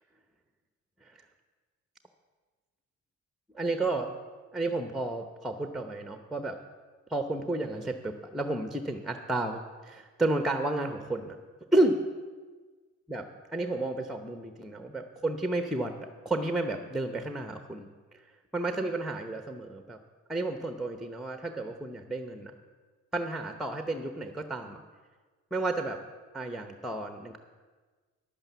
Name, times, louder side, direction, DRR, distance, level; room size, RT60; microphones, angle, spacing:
voice 1, 3.5-4.1 4.5-6.6 7.1-11.4 11.7-11.9 13.1-13.2 13.5-15.9 16.2-17.9 18.5-20.0 20.3-22.5 23.1-24.8 25.5-26.0 26.3-27.4, right 2 dB, ahead, 7 dB, 0.9 m, -31 dB
10.5 x 8.9 x 6.9 m, 1.4 s
cardioid pair, 90°, 30 cm